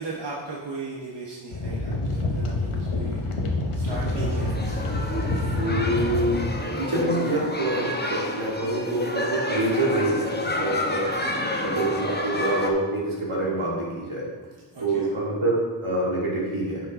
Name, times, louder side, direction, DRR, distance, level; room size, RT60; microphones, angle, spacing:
voice 1, 0.0-3.3 3.7-5.7 14.7-15.1, right 3 dB, 55° right, -4 dB, 1.2 m, -37 dB
sound 1, 1.5-6.5, left 2 dB, 85° left, 1.2 m, -27 dB
sound 2, 3.9-12.7, left 1 dB, 20° left, 0.9 m, -30 dB
voice 2, 5.6-6.4 6.8-11.1 11.6-14.2 14.8-16.8, right 1 dB, 75° right, -5 dB, 2.6 m, -26 dB
9.8 x 5.8 x 3.7 m, 1.4 s
wide cardioid pair, 55°, 50 cm